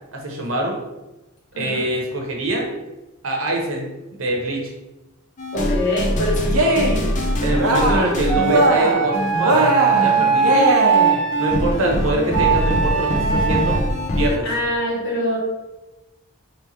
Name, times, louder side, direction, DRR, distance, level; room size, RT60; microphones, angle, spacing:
voice 1, 0.1-0.8 1.6-2.7 3.2-4.7 7.4-9.7 10.0-10.5 11.4-13.8 14.1-14.5, right 1 dB, 65° right, 0 dB, 1.0 m, -24 dB
voice 2, 1.5-1.9 5.5-7.0 14.4-15.4, left 1 dB, 55° left, -3 dB, 1.2 m, -24 dB
sound 1, 5.4-14.4, left 1 dB, 35° left, 0.5 m, -24 dB
Cheering, 6.4-7.1 7.5-8.2 8.4-9.1 9.4-11.2, right 1 dB, 90° right, 0.7 m, -19 dB
sound 2, 8.3-11.5 12.3-13.8, right 7 dB, 20° left, 1.4 m, -20 dB
3.2 x 3.1 x 4.3 m, 1.0 s
head